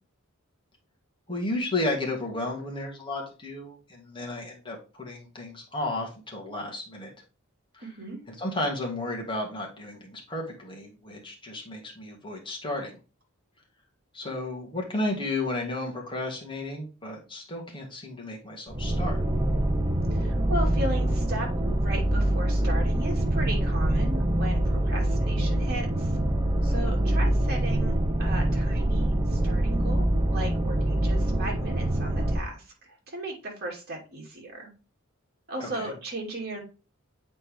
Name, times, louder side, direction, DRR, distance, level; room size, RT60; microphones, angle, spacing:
voice 1, 1.3-7.1 7.7-7.9 8.3-13.0 14.1-19.2 26.7-26.9 35.6-35.9, left 2 dB, 25° left, -1 dB, 2.2 m, -33 dB
voice 2, 7.8-8.2 20.1-21.5 21.8-26.2 26.6-34.7 35.5-36.6, right 1 dB, 50° right, 0 dB, 2.6 m, -36 dB
sound 1, 18.7-32.4, right 1 dB, 20° right, 0.8 m, -25 dB
8.2 x 4.2 x 3.5 m, 0.33 s
head